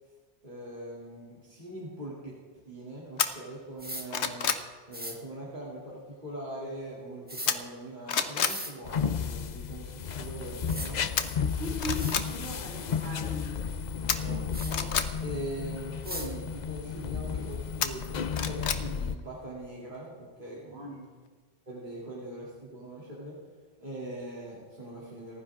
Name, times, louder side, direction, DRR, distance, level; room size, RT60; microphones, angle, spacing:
voice 1, 0.4-2.4 2.6-4.6 4.9-11.1 14.2-14.9 15.2-20.9 21.7-23.4 23.8-25.4, right 1 dB, 45° right, -7 dB, 3.1 m, -41 dB
sound 1, 3.2-3.3 3.8-4.7 7.5-7.8 8.1-8.6 11.2-11.3 11.8-12.3 14.1-15.1 17.8-18.8 19.2-19.3, left 7 dB, 85° left, 1.2 m, -28 dB
sound 2, 3.8-4.1 4.9-5.2 7.3-7.5 8.3-8.7 10.2-10.3 10.7-10.9 11.6-11.7 11.9-12.2 14.5-14.7 16.0-16.3, right 1 dB, 10° right, 1.7 m, -38 dB
sound 3, 8.8-19.2, left 6 dB, 50° left, 0.7 m, -33 dB
voice 2, 11.5-13.5 14.0-14.4 20.7-21.1, equal, 70° right, -3 dB, 3.1 m, -39 dB
28.5 x 10.0 x 3.7 m, 1.5 s
omnidirectional pair, 1.1 m